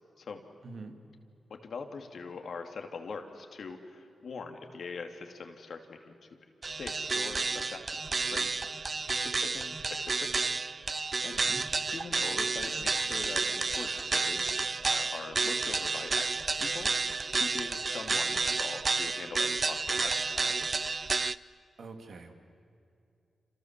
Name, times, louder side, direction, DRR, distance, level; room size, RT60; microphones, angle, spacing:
voice 1, 0.6-0.9 11.4-11.7 21.8-22.3, right 3 dB, 70° right, 5 dB, 2.6 m, -45 dB
voice 2, 1.5-6.1 6.7-10.5 10.9-11.4 11.8-20.9, left 4 dB, 70° left, 5 dB, 2.7 m, -43 dB
sound 1, 6.6-21.4, right 4 dB, 45° right, 0.6 m, -31 dB
27.5 x 27.0 x 7.6 m, 2.5 s
cardioid pair, 55°, 0 cm